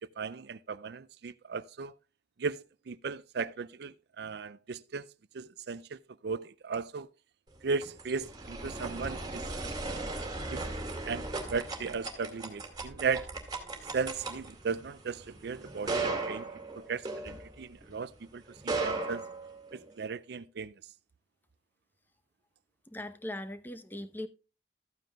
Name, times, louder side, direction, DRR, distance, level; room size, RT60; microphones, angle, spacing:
voice 1, 0.2-1.9 2.4-5.0 5.3-7.1 7.6-9.5 10.5-10.7 11.0-13.4 13.9-19.2 19.7-20.8, right 5 dB, 60° right, 0.4 m, -36 dB
sound 1, 7.6-17.9 18.5-20.0, right 3 dB, 20° right, 2.2 m, -37 dB
voice 2, 22.9-24.3, left 1 dB, 10° left, 0.8 m, -39 dB
14.0 x 9.0 x 2.3 m
head